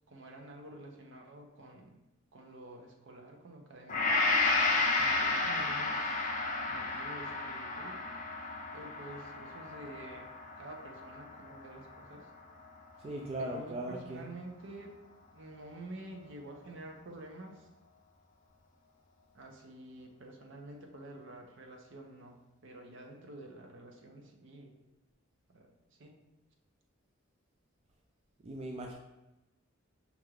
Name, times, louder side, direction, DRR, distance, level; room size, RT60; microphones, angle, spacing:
voice 1, 0.1-2.0 2.3-8.0 8.7-12.3 13.4-14.9 15.3-17.7 19.3-24.8 25.5-26.2, right 1 dB, 60° right, 2 dB, 0.7 m, -49 dB
Gong, 3.9-12.2 12.7-12.8, left 3 dB, 40° left, 0.5 m, -32 dB
voice 2, 13.0-14.3 28.4-28.9, right 1 dB, 30° right, 0 dB, 0.3 m, -38 dB
5.2 x 2.3 x 3.2 m, 0.99 s
head